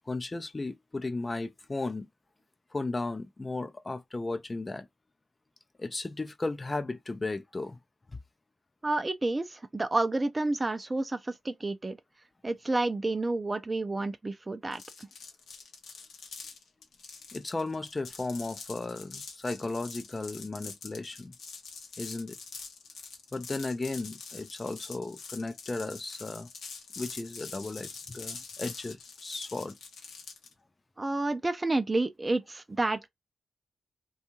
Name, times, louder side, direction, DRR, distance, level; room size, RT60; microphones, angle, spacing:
voice 1, 0.1-2.1 2.7-4.9 5.8-7.8 17.3-21.3 22.0-22.3 23.3-26.5 27.0-29.7, left 2 dB, 35° left, 0.4 m, -35 dB
voice 2, 8.8-12.0 12.4-14.8 31.0-33.1, right 2 dB, 30° right, 0.4 m, -30 dB
sound 1, 14.7-30.5, left 5 dB, 80° left, 0.7 m, -45 dB
2.6 x 2.3 x 2.9 m
supercardioid pair, 45°, 0 cm